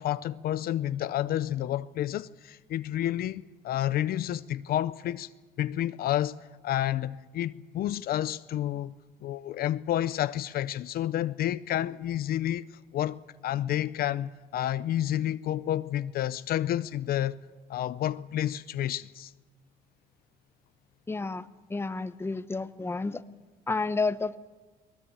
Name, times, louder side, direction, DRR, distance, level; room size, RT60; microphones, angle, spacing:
voice 1, 0.0-5.3 5.6-8.9 9.2-17.4 17.7-19.3, left 12 dB, 65° left, 0.6 m, -30 dB
voice 2, 21.1-21.4 21.7-23.2 23.7-24.4, left 3 dB, 15° left, 0.9 m, -30 dB
20.5 x 20.5 x 8.9 m
cardioid pair, 110°, 17 cm